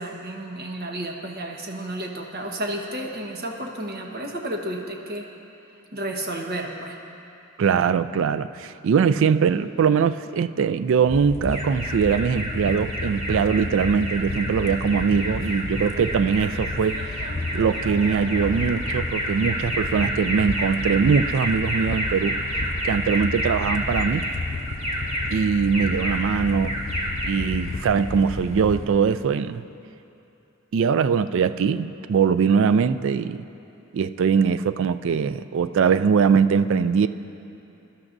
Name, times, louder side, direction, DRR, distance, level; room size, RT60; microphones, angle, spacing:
voice 1, 0.0-5.3 5.9-7.0, right 1 dB, 50° right, 1 dB, 1.3 m, -32 dB
voice 2, 7.6-17.3 17.5-22.4 22.8-24.3 25.3-26.7 27.2-29.6 30.7-33.4 33.9-37.1, right 6 dB, 65° right, 12 dB, 0.3 m, -21 dB
sound 1, 11.1-28.8, left 2 dB, 35° left, 0.5 m, -32 dB
Alarm, 11.5-29.1, equal, 30° right, 2.4 m, -30 dB
22.5 x 12.0 x 2.6 m, 2.8 s
head